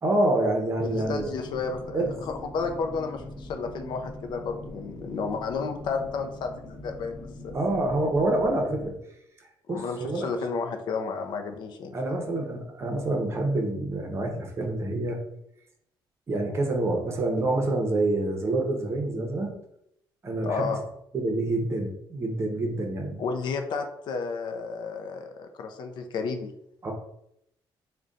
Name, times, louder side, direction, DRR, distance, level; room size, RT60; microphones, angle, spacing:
voice 1, 0.0-1.3 1.9-2.1 7.5-8.9 9.7-10.3 11.9-15.2 16.3-19.5 20.2-20.8 21.1-23.2 26.8-26.9, right 2 dB, 30° right, 2 dB, 0.7 m, -27 dB
voice 2, 0.8-7.5 9.7-11.9 20.4-20.8 23.2-26.5, left 4 dB, 65° left, 6 dB, 0.5 m, -32 dB
sound 1, 0.9-8.9, left 2 dB, 45° left, 0.9 m, -42 dB
3.9 x 2.2 x 3.7 m, 0.75 s
cardioid pair, 150°, 8 cm